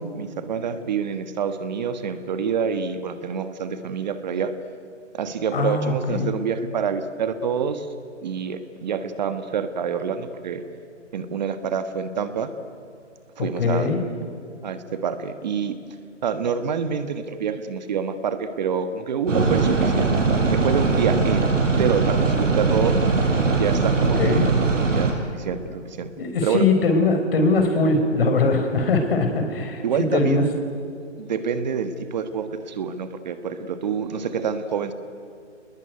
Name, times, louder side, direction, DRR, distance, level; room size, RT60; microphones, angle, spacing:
voice 1, 0.1-4.5 5.1-7.9 8.2-10.6 11.1-12.5 13.4-13.9 14.6-15.8 16.2-23.0 23.6-26.1 26.4-26.7 29.8-30.5 31.2-34.9, right 6 dB, 35° right, 10 dB, 1.4 m, -27 dB
voice 2, 5.5-6.3 13.6-14.0 24.2-24.4 26.2-30.4, left 3 dB, 50° left, 6 dB, 4.9 m, -21 dB
sound 1, 19.3-25.1, right 4 dB, 85° right, 6.8 m, -20 dB
28.5 x 20.5 x 9.4 m, 2.4 s
hypercardioid pair, 160°, 37 cm